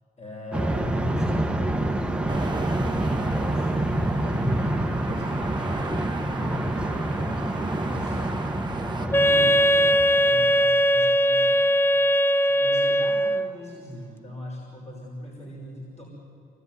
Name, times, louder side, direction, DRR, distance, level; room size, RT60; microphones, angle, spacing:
voice 1, 0.2-2.0 2.4-3.7 4.0-5.9 6.2-8.4 8.8-11.7 12.5-16.0, left 1 dB, 35° left, -3 dB, 6.1 m, -39 dB
sound 1, 0.5-10.8, right 1 dB, 5° right, 1.3 m, -27 dB
sound 2, 2.3-9.1, right 4 dB, 20° right, 1.2 m, -38 dB
Wind instrument woodwind instrument, 9.1-13.6, equal, 10° left, 0.8 m, -20 dB
25.5 x 19.5 x 9.6 m, 2.9 s
cardioid pair, 90°, 20 cm